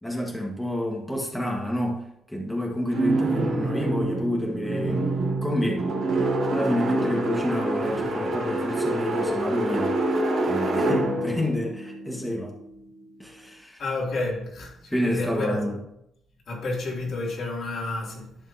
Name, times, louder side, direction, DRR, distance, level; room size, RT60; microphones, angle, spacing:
voice 1, 0.0-5.1 5.4-5.9 6.5-10.0 10.4-12.5 13.2-13.8 14.9-15.8, equal, 5° left, 1.5 m, -29 dB
sound 1, 2.9-12.9, right 2 dB, 65° right, 3.0 m, -26 dB
voice 2, 13.8-15.6 16.5-18.4, left 2 dB, 60° left, 2.7 m, -30 dB
11.5 x 5.2 x 2.8 m
cardioid pair, 90°, 0 cm